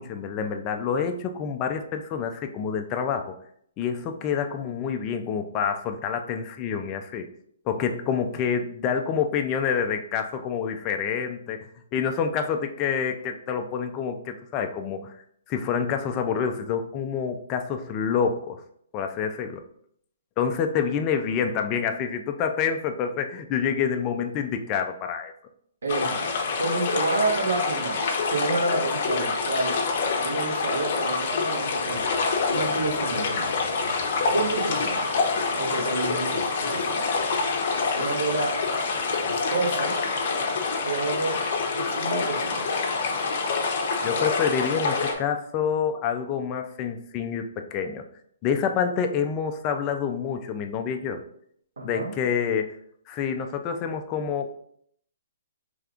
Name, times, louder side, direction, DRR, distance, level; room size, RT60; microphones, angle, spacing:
voice 1, 0.0-3.3 3.8-7.3 7.7-15.1 15.5-18.6 18.9-19.6 20.4-25.3 44.0-48.0 48.4-51.2 51.8-52.7 53.1-54.5, left 7 dB, 20° left, 6 dB, 0.3 m, -27 dB
voice 2, 25.8-29.8 30.2-32.0 32.5-33.5 34.3-35.0 35.6-37.0 37.9-38.6 39.3-39.9 40.8-41.4 41.8-42.7 51.8-52.1, right 3 dB, 90° right, 1 dB, 1.1 m, -29 dB
sound 1, 25.9-45.1, left 4 dB, 40° left, 0.7 m, -26 dB
5.0 x 3.3 x 2.4 m, 0.67 s
hypercardioid pair, 170°, 0 cm